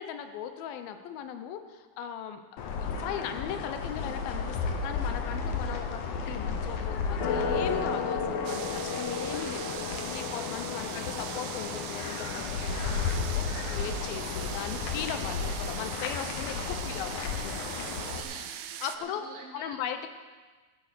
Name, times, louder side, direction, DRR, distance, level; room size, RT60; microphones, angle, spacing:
voice 1, 0.0-17.7 18.8-19.2 19.5-20.1, left 9 dB, 85° left, 8 dB, 2.7 m, -38 dB
sound 1, 2.6-18.2, left 5 dB, 65° left, 2.4 m, -33 dB
sound 2, 8.5-19.0, right 10 dB, 80° right, 1.7 m, -41 dB
voice 2, 10.8-11.1 16.6-17.0 18.0-19.8, right 3 dB, 50° right, 0 dB, 2.1 m, -48 dB
14.5 x 10.5 x 6.6 m, 1.4 s
omnidirectional pair, 4.1 m